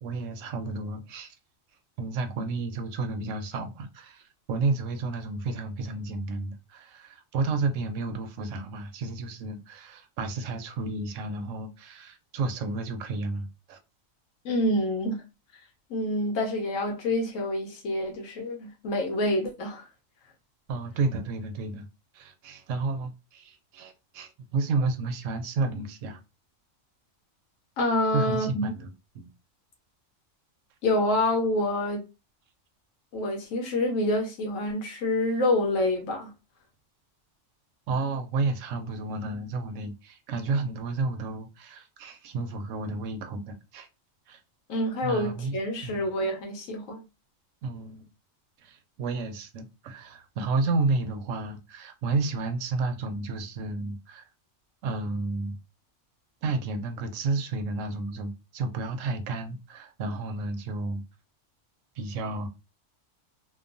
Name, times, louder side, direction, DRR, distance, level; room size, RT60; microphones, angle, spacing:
voice 1, 0.0-1.3 2.0-13.8 20.7-21.9 22.1-26.2 28.1-29.3 37.9-43.9 44.3-44.4 45.0-46.1 47.6-48.1 48.6-54.2 54.8-55.6 56.4-61.0 62.0-62.5, right 3 dB, 80° right, 0.9 m, -31 dB
voice 2, 14.4-15.2 15.9-19.9 27.8-28.6 30.8-32.0 33.1-36.3 44.7-47.0, left 1 dB, 85° left, 1.0 m, -27 dB
2.9 x 2.1 x 2.5 m
omnidirectional pair, 1.3 m